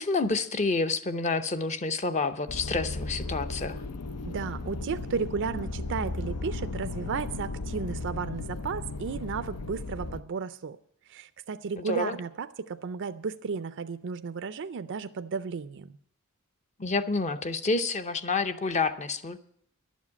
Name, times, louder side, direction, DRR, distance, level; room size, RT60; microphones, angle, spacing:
voice 1, 0.0-3.8 11.8-12.2 16.8-19.4, left 3 dB, 30° left, 10 dB, 0.7 m, -28 dB
sound 1, 2.5-10.2, left 2 dB, 85° left, 0.7 m, -35 dB
voice 2, 4.2-10.8 11.1-15.9, right 5 dB, 55° right, 12 dB, 0.4 m, -34 dB
11.5 x 7.3 x 9.5 m, 0.67 s
head